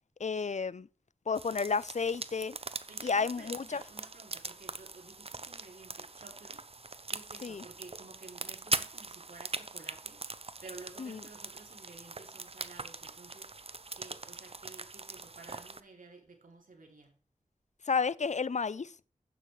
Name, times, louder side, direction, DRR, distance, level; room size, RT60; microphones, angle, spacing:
voice 1, 0.2-0.9 1.3-2.6 3.0-3.8 7.4-7.6 11.0-11.2 17.9-18.9, left 5 dB, 60° left, 0.5 m, -31 dB
sound 1, 1.3-15.8, right 3 dB, 45° right, 0.7 m, -41 dB
voice 2, 2.9-6.6 7.1-13.5 13.9-17.2, right 3 dB, 90° right, 2.9 m, -53 dB
11.5 x 8.9 x 3.2 m
wide cardioid pair, 45°, 14 cm